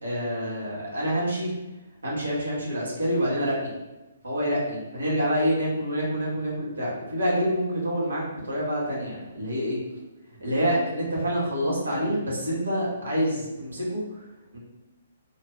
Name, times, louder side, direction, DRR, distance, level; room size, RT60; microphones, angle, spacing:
voice 1, 0.0-1.5 2.0-3.7 4.2-9.8 10.4-14.3 14.5-14.6, equal, 90° right, -6 dB, 1.5 m, -27 dB
2.8 x 2.5 x 3.2 m, 1.1 s
hypercardioid pair, 140°, 0 cm